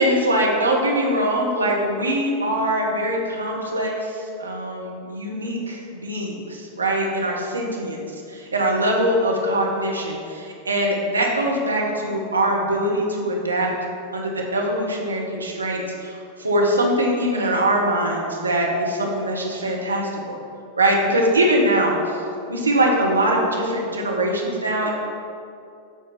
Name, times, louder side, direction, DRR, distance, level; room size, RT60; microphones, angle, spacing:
voice 1, 0.0-8.0 8.3-13.7 14.1-20.4 20.8-22.2 22.5-24.9, right 1 dB, 75° right, -1 dB, 1.2 m, -22 dB
7.5 x 4.2 x 5.7 m, 2.5 s
figure-of-eight pair, 90°, 0 cm